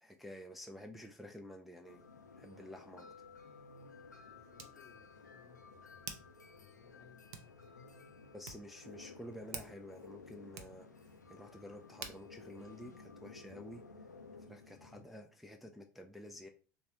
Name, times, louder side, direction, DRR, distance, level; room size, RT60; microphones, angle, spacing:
voice 1, 0.0-2.0 2.4-3.1 8.3-14.1 14.4-16.5, left 1 dB, ahead, 0.3 m, -51 dB
sound 1, 1.9-15.0, left 4 dB, 85° left, 0.4 m, -55 dB
Hands, 3.0-13.7, right 7 dB, 60° right, 0.5 m, -54 dB
voice 2, 4.3-6.2 6.6-7.9 14.8-15.1, left 8 dB, 40° left, 0.6 m, -64 dB
3.9 x 2.2 x 2.8 m
figure-of-eight pair, 75°, 9 cm